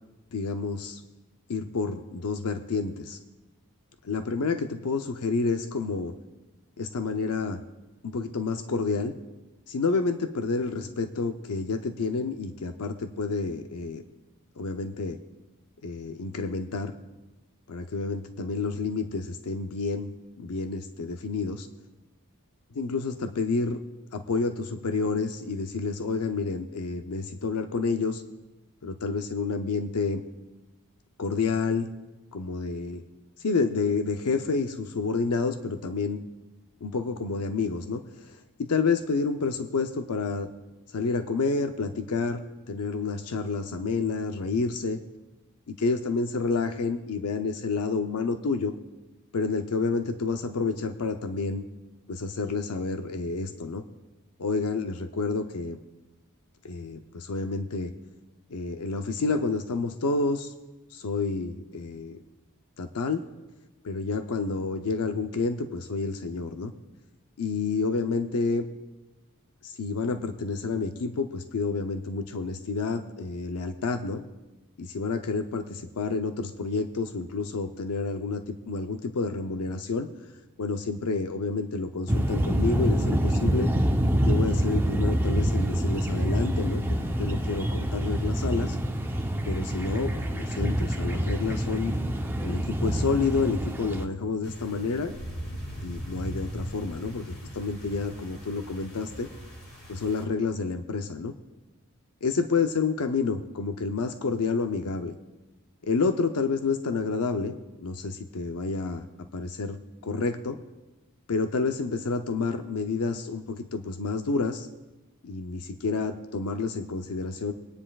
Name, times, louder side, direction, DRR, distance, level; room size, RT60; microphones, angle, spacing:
voice 1, 0.3-1.0 1.5-3.2 4.0-6.1 6.8-7.6 8.0-9.2 9.7-14.0 14.6-15.2 15.8-16.9 17.7-20.1 20.4-21.7 22.7-23.8 24.1-28.2 28.8-30.2 31.2-31.9 32.3-33.0 33.4-36.3 36.8-40.5 40.9-42.4 42.7-45.0 45.7-48.7 49.3-51.6 52.1-53.8 54.4-55.8 56.6-57.9 58.5-60.5 60.9-62.2 62.8-63.2 63.8-66.7 67.4-68.7 69.6-74.2 74.8-80.1 80.6-83.7 84.3-88.8 89.5-91.9 92.4-95.1 95.8-99.3 99.9-101.3 102.2-105.2 105.8-107.5 107.8-109.1 109.3-109.8 110.0-110.6 111.3-114.7 115.2-117.5, left 4 dB, 85° left, 7 dB, 0.6 m, -29 dB
sound 1, 82.1-94.0, equal, 10° right, 0.7 m, -26 dB
sound 2, 94.4-100.2, equal, 50° left, 2.1 m, -39 dB
24.0 x 9.9 x 2.3 m, 1.1 s
head